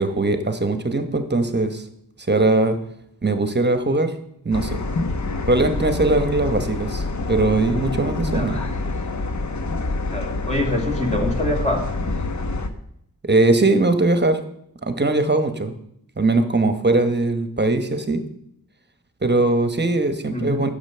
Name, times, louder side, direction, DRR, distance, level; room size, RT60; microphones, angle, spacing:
voice 1, 0.0-1.8 2.3-2.8 3.2-4.1 4.4-4.8 5.5-7.0 7.3-8.6 13.2-14.4 14.8-15.7 16.2-18.2 19.2-20.7, right 2 dB, 30° right, 8 dB, 1.1 m, -20 dB
sound 1, 4.5-12.7, left 2 dB, 50° left, 0.9 m, -26 dB
voice 2, 10.1-11.9 20.3-20.6, left 1 dB, 20° left, 0 dB, 2.0 m, -25 dB
8.9 x 6.8 x 6.7 m, 0.73 s
wide cardioid pair, 100°, 36 cm